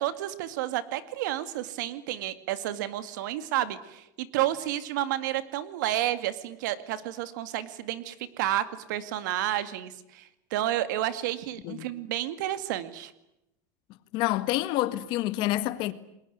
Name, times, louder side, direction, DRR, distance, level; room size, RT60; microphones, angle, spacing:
voice 1, 0.0-10.2 10.5-13.1, right 13 dB, 85° right, 2.2 m, -31 dB
voice 2, 14.1-15.9, left 16 dB, 55° left, 1.7 m, -27 dB
29.5 x 21.5 x 9.4 m
supercardioid pair, 150°, 10 cm